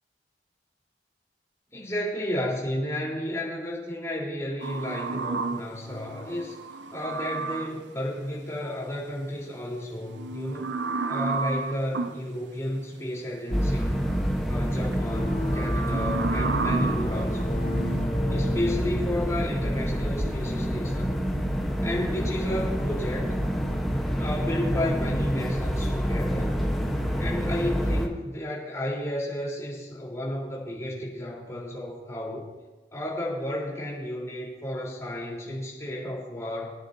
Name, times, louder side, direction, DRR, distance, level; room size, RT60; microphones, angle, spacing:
voice 1, 1.7-6.6 6.9-10.7 11.1-14.0 14.5-17.6 18.3-21.2 21.8-23.5 24.2-26.5 27.2-32.5 32.9-36.7, left 1 dB, 15° left, -5 dB, 4.1 m, -32 dB
sound 1, 4.6-7.9 10.0-12.2 13.6-14.2 14.7-18.1, right 4 dB, 90° right, 0.6 m, -32 dB
sound 2, 13.5-28.1, equal, ahead, 1.2 m, -27 dB
sound 3, 15.0-23.1, left 1 dB, 30° left, 1.5 m, -38 dB
24.5 x 10.0 x 2.8 m, 1.2 s
head